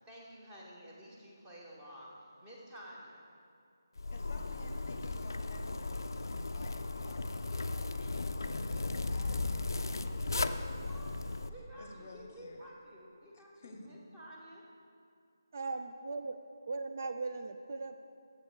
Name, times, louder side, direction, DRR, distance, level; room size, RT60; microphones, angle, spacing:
voice 1, 0.1-3.2 10.3-11.1 11.5-14.6, equal, 10° right, -4 dB, 1.0 m, -51 dB
Zipper (clothing), 4.0-11.5, left 3 dB, 75° left, 0.4 m, -36 dB
voice 2, 4.1-10.9 11.8-12.7 13.3-14.0, left 3 dB, 35° left, 5 dB, 0.7 m, -54 dB
voice 3, 15.5-16.4 16.7-18.0, right 3 dB, 45° right, 7 dB, 0.3 m, -38 dB
7.1 x 6.3 x 6.4 m, 2.4 s
figure-of-eight pair, 165°, 2 cm